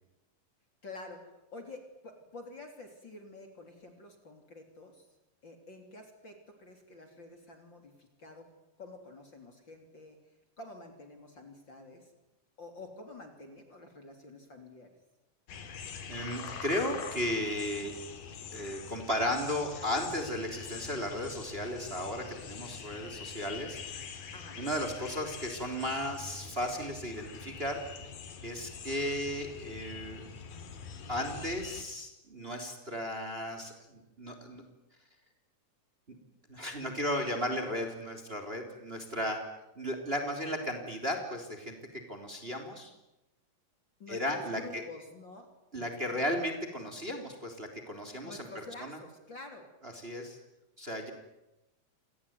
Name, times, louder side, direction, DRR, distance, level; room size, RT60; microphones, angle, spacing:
voice 1, 0.8-5.1 5.4-8.5 8.8-12.1 12.6-14.9 24.3-24.6 44.0-46.3 48.2-49.7, left 2 dB, 35° left, 5 dB, 3.7 m, -49 dB
sound 1, 15.5-31.8, left 6 dB, 85° left, 4.0 m, -44 dB
voice 2, 16.1-17.9 18.5-23.8 24.6-27.8 28.4-30.2 31.1-34.6 36.1-36.2 36.5-39.4 39.8-42.9 44.1-44.8 45.7-48.4 48.8-49.0 49.8-50.4 50.8-51.1, equal, 15° right, 6 dB, 3.6 m, -35 dB
28.0 x 19.5 x 9.5 m, 0.95 s
omnidirectional pair, 3.8 m